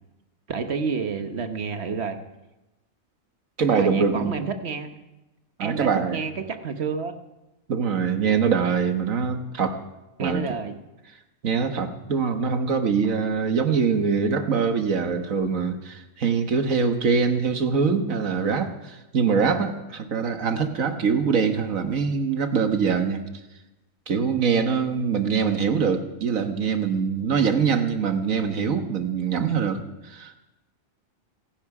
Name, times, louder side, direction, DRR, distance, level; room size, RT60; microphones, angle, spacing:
voice 1, 0.5-2.2 3.8-5.0 5.6-7.1 10.2-10.8 14.2-14.3, right 5 dB, 55° right, 7 dB, 1.4 m, -29 dB
voice 2, 3.6-4.4 5.6-6.2 7.7-9.8 10.2-10.6 11.4-23.2 24.1-30.4, right 6 dB, 85° right, 7 dB, 1.7 m, -23 dB
25.5 x 11.0 x 4.9 m, 1.0 s
omnidirectional pair, 1.4 m